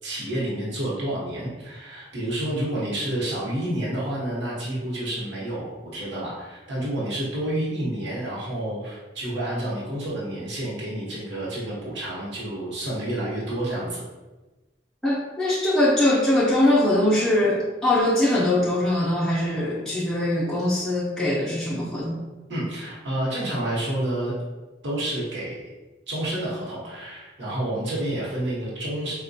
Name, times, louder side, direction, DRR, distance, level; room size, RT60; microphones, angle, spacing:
voice 1, 0.0-14.0 22.5-24.3 24.8-25.7 26.1-29.1, right 1 dB, 75° right, -7 dB, 0.9 m, -29 dB
voice 2, 15.0-22.2, left 1 dB, 5° left, -7 dB, 0.5 m, -22 dB
4.0 x 2.1 x 2.6 m, 1.2 s
head